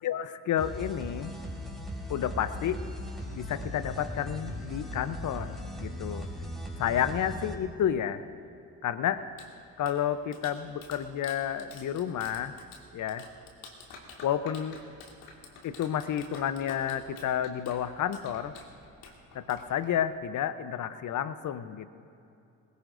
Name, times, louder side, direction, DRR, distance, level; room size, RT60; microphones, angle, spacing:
voice 1, 0.0-1.3 2.1-2.9 3.3-6.3 6.8-8.2 8.8-9.3 9.8-12.6 12.9-13.3 14.2-14.8 15.6-18.5 19.3-21.9, left 9 dB, 55° left, 13 dB, 0.8 m, -30 dB
sound 1, 0.6-7.5, equal, ahead, 4.4 m, -38 dB
Clapping, 9.1-20.2, left 3 dB, 75° left, 2.1 m, -50 dB
21.5 x 20.5 x 2.6 m, 2.7 s
hypercardioid pair, 50°, 37 cm